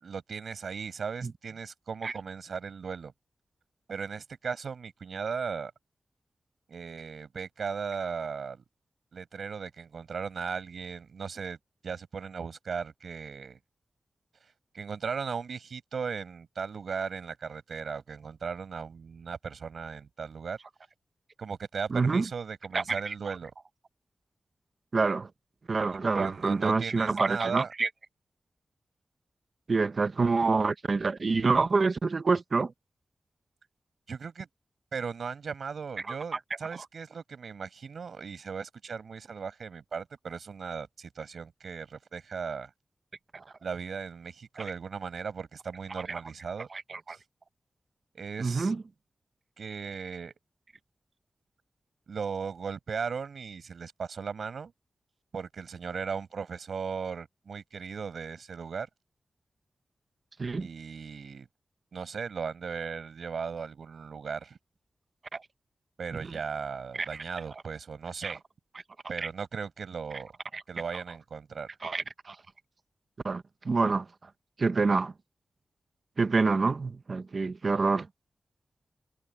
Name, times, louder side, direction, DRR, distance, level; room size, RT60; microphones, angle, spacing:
voice 1, 0.0-3.1 3.9-5.7 6.7-8.6 9.1-11.6 11.8-13.6 14.7-20.6 21.4-23.5 25.9-27.7 34.1-34.5 34.9-42.7 43.6-46.7 47.1-47.2 48.1-48.7 49.6-50.3 52.1-54.7 55.3-58.9 60.5-61.5 61.9-64.6 66.0-68.4 69.1-70.3 70.7-71.7, right 5 dB, 80° right, 7.9 m, -37 dB
voice 2, 21.9-22.2 22.7-23.1 24.9-25.3 25.7-27.9 29.7-32.7 43.3-43.4 46.1-46.2 46.7-47.2 48.4-48.8 60.4-60.7 65.3-65.4 67.0-67.1 68.2-68.3 69.2-69.3 70.5-70.6 71.8-72.4 73.2-74.0 74.6-75.1 76.2-78.1, right 4 dB, 55° right, 1.0 m, -27 dB
wide cardioid pair, 85°, 0 cm